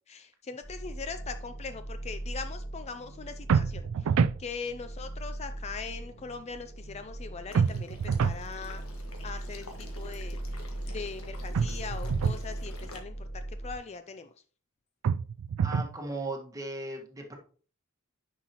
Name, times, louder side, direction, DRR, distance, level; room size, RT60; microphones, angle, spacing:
voice 1, 0.1-4.1 4.4-8.8 9.2-10.4 10.9-14.3, left 5 dB, 30° left, 9 dB, 0.4 m, -41 dB
sound 1, 0.6-13.8, right 1 dB, 60° left, 4.2 m, -39 dB
sound 2, 3.5-4.4 7.6-8.4 11.5-12.4 15.0-16.0, right 6 dB, 80° right, 0.3 m, -26 dB
Water / Liquid, 7.5-13.0, left 1 dB, 80° left, 1.7 m, -49 dB
voice 2, 15.6-17.4, right 2 dB, 15° right, 1 dB, 1.5 m, -37 dB
9.8 x 5.7 x 3.0 m, 0.42 s
head